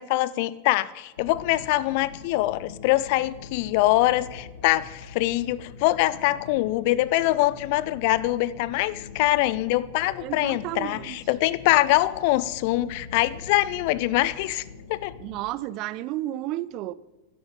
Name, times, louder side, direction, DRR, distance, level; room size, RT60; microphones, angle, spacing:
voice 1, 0.0-14.6 14.9-15.1, left 17 dB, 45° left, 0.5 m, -24 dB
sound 1, 1.2-15.4, left 4 dB, 65° left, 1.2 m, -44 dB
voice 2, 10.2-11.2 15.2-16.9, right 15 dB, 40° right, 0.4 m, -32 dB
12.0 x 10.5 x 5.3 m
figure-of-eight pair, 90°, 0 cm